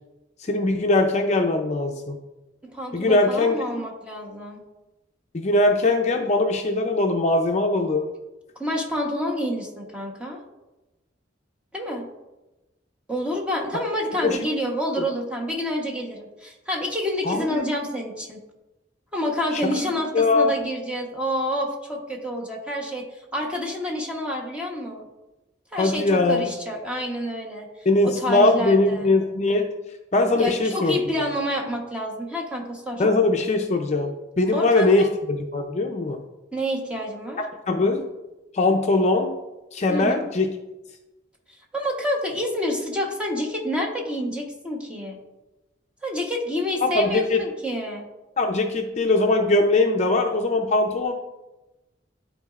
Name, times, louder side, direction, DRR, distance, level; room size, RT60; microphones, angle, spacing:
voice 1, 0.4-2.2 2.9-3.6 5.3-8.1 14.2-14.4 15.0-15.1 17.2-17.6 19.5-19.9 20.1-20.6 25.8-26.5 27.9-29.7 30.1-31.0 33.0-36.2 37.7-38.0 38.5-39.4 39.7-40.5 46.8-47.4 48.4-51.1, left 2 dB, 35° left, 3 dB, 0.5 m, -21 dB
voice 2, 2.6-4.6 8.6-10.4 11.7-12.1 13.1-18.4 19.1-23.1 23.3-25.0 25.7-27.7 28.0-29.1 30.4-33.0 34.5-35.1 36.5-37.4 39.9-40.2 41.7-45.2 46.0-48.1, equal, 5° right, -1 dB, 1.0 m, -28 dB
12.0 x 4.1 x 2.4 m, 1.0 s
head